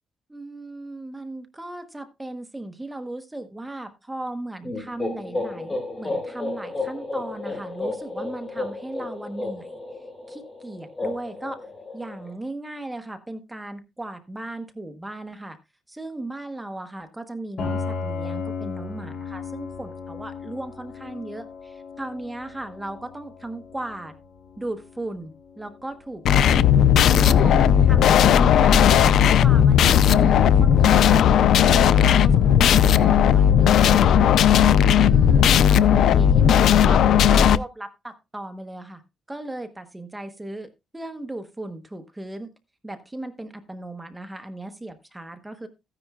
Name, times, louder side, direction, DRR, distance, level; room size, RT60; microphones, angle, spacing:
voice 1, 0.3-9.8 10.3-11.7 11.9-15.6 15.9-24.1 24.6-26.7 27.1-31.2 31.6-34.3 34.9-39.0 39.3-42.5 42.8-45.7, right 2 dB, 10° right, 8 dB, 1.1 m, -36 dB
sound 1, 4.6-12.3, left 2 dB, 20° left, 4.5 m, -32 dB
Piano, 17.6-27.2, left 4 dB, 55° left, 3.3 m, -36 dB
sound 2, 26.3-37.6, left 9 dB, 70° left, 0.4 m, -16 dB
14.5 x 9.9 x 2.4 m, 0.25 s
cardioid pair, 135°, 0 cm